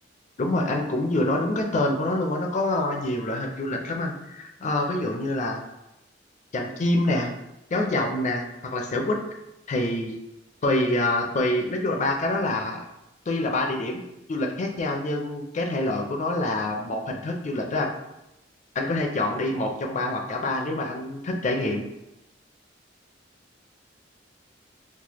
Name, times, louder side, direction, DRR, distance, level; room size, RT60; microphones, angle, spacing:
voice 1, 0.4-5.6 6.5-7.3 7.7-9.2 9.7-10.2 10.6-12.8 13.3-14.0 14.3-17.9 18.7-21.8, left 2 dB, 40° left, 2 dB, 0.4 m, -26 dB
3.2 x 2.0 x 2.9 m, 0.88 s
head